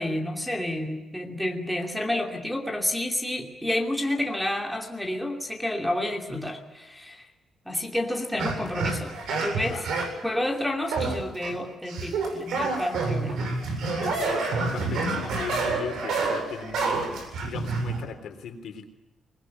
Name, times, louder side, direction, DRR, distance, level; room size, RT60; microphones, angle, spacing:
voice 1, 0.0-7.3 7.6-9.1 9.4-9.9 10.2-13.4, left 1 dB, ahead, 1 dB, 2.7 m, -30 dB
sound 1, 8.4-10.2 10.9-11.5 11.9-18.0, right 3 dB, 85° right, 7.8 m, -28 dB
voice 2, 13.9-17.1 17.4-18.9, left 7 dB, 70° left, 7 dB, 3.4 m, -38 dB
23.5 x 21.0 x 9.4 m, 0.99 s
wide cardioid pair, 180°, 0 cm